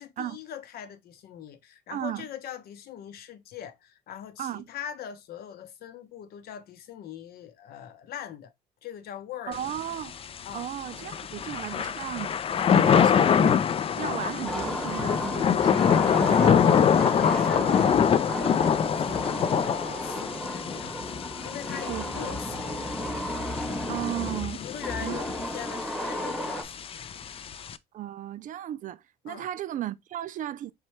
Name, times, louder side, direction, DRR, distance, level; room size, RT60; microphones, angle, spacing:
voice 1, 0.0-8.5 8.8-9.6 10.4-10.7 12.5-13.0 16.0-23.2 24.5-27.5 29.3-29.5, left 9 dB, 65° left, 0.8 m, -41 dB
voice 2, 1.9-2.3 4.4-4.7 9.5-10.2 10.5-12.4 12.7-13.6 14.0-16.7 21.9-22.1 23.9-24.6 25.0-25.2 27.9-30.7, right 12 dB, 50° right, 0.5 m, -35 dB
Thunder / Rain, 9.5-27.8, left 7 dB, 35° left, 0.4 m, -25 dB
sound 1, 14.4-26.6, equal, ahead, 1.1 m, -34 dB
4.4 x 3.2 x 3.1 m
cardioid pair, 110°, 17 cm